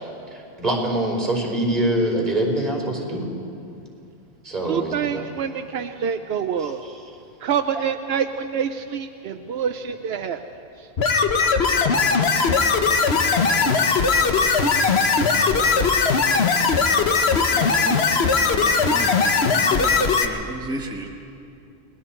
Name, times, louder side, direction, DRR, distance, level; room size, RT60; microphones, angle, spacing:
voice 1, 0.0-3.3 4.4-5.2 6.6-6.9, right 1 dB, 45° right, 0 dB, 4.6 m, -24 dB
voice 2, 4.7-6.8 7.4-10.5 10.8-10.9, right 7 dB, 85° right, 8 dB, 0.9 m, -26 dB
sound 1, 11.0-20.2, left 4 dB, 90° left, 1.3 m, -19 dB
voice 3, 17.5-18.0 18.3-19.1 19.6-21.1, right 1 dB, 5° right, 1 dB, 1.2 m, -34 dB
29.5 x 20.0 x 4.4 m, 2.5 s
omnidirectional pair, 1.0 m